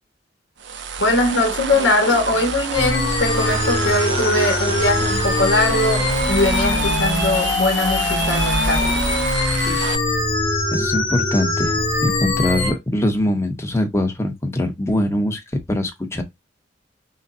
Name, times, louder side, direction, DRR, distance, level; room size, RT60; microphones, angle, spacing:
sound 1, 0.6-10.0, right 5 dB, 75° right, 0.7 m, -28 dB
voice 1, 1.0-8.9 9.6-9.8, left 2 dB, 70° left, 1.4 m, -21 dB
sound 2, 2.7-12.7, left 2 dB, 30° left, 1.5 m, -22 dB
voice 2, 10.7-16.2, left 1 dB, 15° left, 1.0 m, -22 dB
6.4 x 2.3 x 2.7 m
head